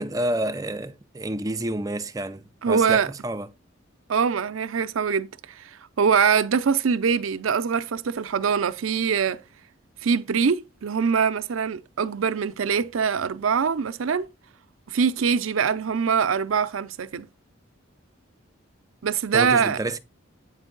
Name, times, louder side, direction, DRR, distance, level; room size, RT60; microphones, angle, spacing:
voice 1, 0.0-3.5 19.3-20.0, right 1 dB, 15° right, 0.5 m, -29 dB
voice 2, 2.6-3.1 4.1-5.7 6.0-9.4 10.0-14.3 14.9-17.3 19.0-19.8, right 6 dB, 90° right, 0.5 m, -23 dB
8.6 x 4.5 x 3.8 m
head